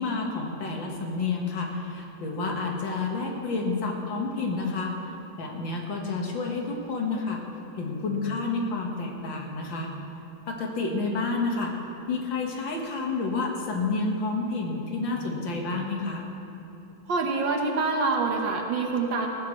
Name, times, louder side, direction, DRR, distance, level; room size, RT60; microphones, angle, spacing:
voice 1, 0.0-4.9 5.4-7.4 7.8-9.9 10.5-11.7 12.1-16.3, left 3 dB, 70° left, 0 dB, 2.2 m, -29 dB
voice 2, 17.1-19.3, right 3 dB, 70° right, 2 dB, 1.9 m, -26 dB
18.0 x 15.0 x 3.2 m, 3.0 s
omnidirectional pair, 2.2 m